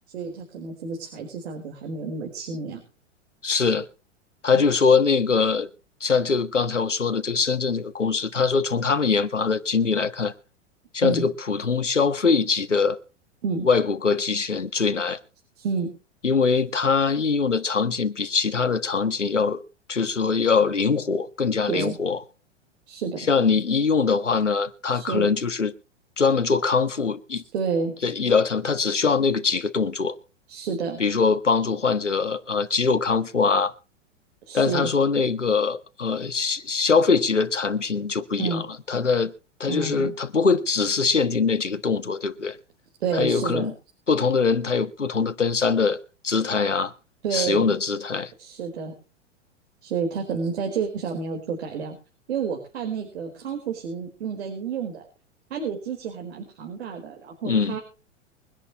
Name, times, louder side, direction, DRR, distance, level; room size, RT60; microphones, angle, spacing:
voice 1, 0.1-2.8 4.5-4.7 11.0-11.3 13.4-13.7 15.6-15.9 21.7-22.0 22.9-23.3 24.9-25.3 27.5-28.0 30.5-31.0 34.5-34.9 38.4-38.7 39.7-40.1 43.0-43.7 47.2-47.7 48.4-48.9 49.8-52.0 52.3-55.0 55.5-57.8, right 5 dB, 60° right, 4.7 m, -29 dB
voice 2, 3.4-3.9 4.4-5.7 6.0-10.3 10.9-13.0 13.6-15.2 16.2-19.6 19.9-22.2 23.3-25.7 26.2-27.4 28.0-30.1 31.0-33.7 34.5-39.3 39.6-42.6 43.1-43.7 44.1-46.9 47.3-48.3 57.4-57.8, left 5 dB, 85° left, 1.5 m, -22 dB
24.0 x 11.0 x 3.1 m
figure-of-eight pair, 95°, 36 cm